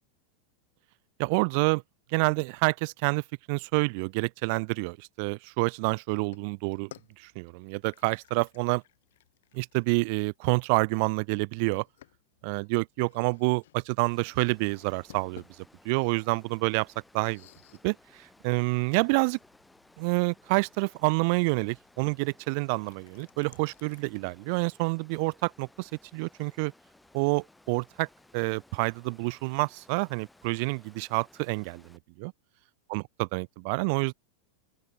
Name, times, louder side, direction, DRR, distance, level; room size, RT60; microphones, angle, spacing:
voice 1, 1.2-1.8 2.1-6.9 7.2-8.8 9.5-11.8 12.4-15.4 15.8-16.9 17.1-17.4 17.8-19.4 20.0-26.7 27.1-28.1 28.3-32.3 32.9-34.1, right 33 dB, 45° right, 0.4 m, -28 dB
sound 1, 6.2-24.0, left 14 dB, 55° left, 3.9 m, -58 dB
Water, 14.0-32.0, left 2 dB, 5° left, 3.8 m, -60 dB
open air
figure-of-eight pair, 90°, 0 cm